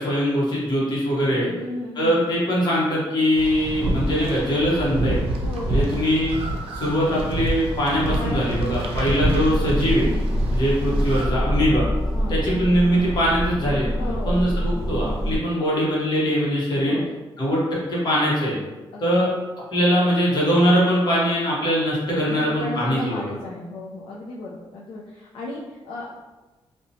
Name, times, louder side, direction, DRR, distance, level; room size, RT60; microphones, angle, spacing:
voice 1, 0.0-1.5 1.9-5.2 5.7-6.4 6.7-10.1 10.5-11.9 12.3-17.0 17.4-18.6 19.0-19.3 19.7-23.3, equal, 50° left, -5 dB, 0.9 m, -22 dB
voice 2, 1.5-2.2 5.4-6.1 8.2-9.1 11.6-11.8 12.1-12.4 14.0-14.4 16.9-17.1 18.9-19.3 22.3-26.1, left 2 dB, 70° left, -4 dB, 0.4 m, -35 dB
sound 1, 3.3-11.3, right 1 dB, 75° right, 0.4 m, -27 dB
sound 2, 9.3-15.4, equal, 5° left, 0.8 m, -25 dB
2.8 x 2.1 x 2.6 m, 1.2 s
wide cardioid pair, 145°, 10 cm